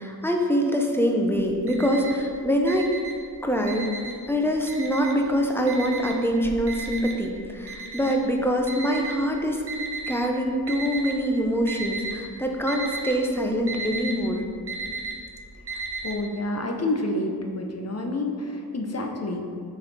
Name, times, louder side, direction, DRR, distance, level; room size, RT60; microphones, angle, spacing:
voice 1, 0.0-2.9 3.4-3.9 4.3-9.6 10.1-14.4, equal, 5° left, 1 dB, 0.7 m, -24 dB
Alarm, 1.3-2.3 2.6-4.3 4.7-5.3 5.7-10.1 10.7-11.3 11.6-12.2 12.5-16.1, right 4 dB, 90° right, 1.0 m, -34 dB
voice 2, 16.0-19.4, left 2 dB, 40° left, 3 dB, 0.7 m, -28 dB
6.7 x 4.1 x 4.1 m, 2.2 s
wide cardioid pair, 80°, 39 cm